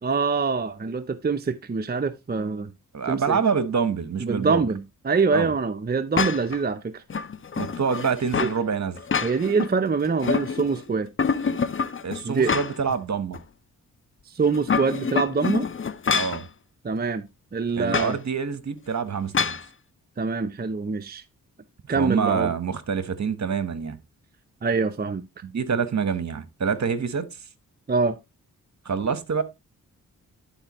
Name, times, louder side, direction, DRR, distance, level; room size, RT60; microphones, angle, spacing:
voice 1, 0.0-2.7 3.1-3.4 4.2-7.0 8.4-8.5 9.2-11.1 12.2-12.5 14.3-15.7 16.8-18.2 20.2-21.2 21.9-22.5 24.6-25.2 27.9-28.2, right 4 dB, 25° right, 0.6 m, -25 dB
voice 2, 2.9-4.6 5.3-5.5 7.6-9.0 12.0-13.4 16.1-16.5 17.8-19.6 21.9-24.0 25.4-27.3 28.8-29.4, right 6 dB, 50° right, 1.2 m, -26 dB
sound 1, 6.1-6.6 7.1-8.6 9.0-9.7 10.0-10.8 11.2-12.9 13.3-13.4 14.4-16.4 17.9-18.1 19.3-19.6, left 5 dB, 35° left, 0.6 m, -26 dB
11.5 x 4.4 x 3.0 m
cardioid pair, 55°, 35 cm